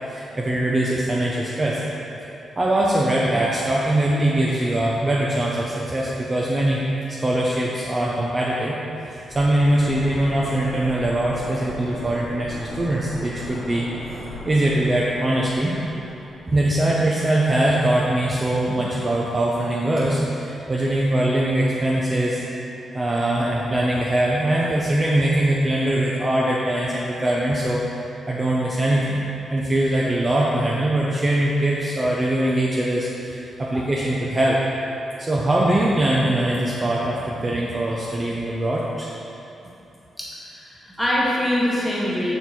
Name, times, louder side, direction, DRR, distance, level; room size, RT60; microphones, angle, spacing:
voice 1, 0.1-1.8 2.6-6.8 7.1-13.9 14.4-15.8 16.5-22.4 22.9-27.8 28.3-29.2 29.5-34.6 35.2-39.1, right 1 dB, 25° right, -5 dB, 0.5 m, -22 dB
sound 1, 9.3-18.0 18.3-18.4, left 1 dB, 65° left, 1.0 m, -38 dB
voice 2, 40.2-42.3, left 1 dB, ahead, -7 dB, 1.2 m, -24 dB
6.5 x 4.5 x 4.1 m, 2.8 s
wide cardioid pair, 150°, 0 cm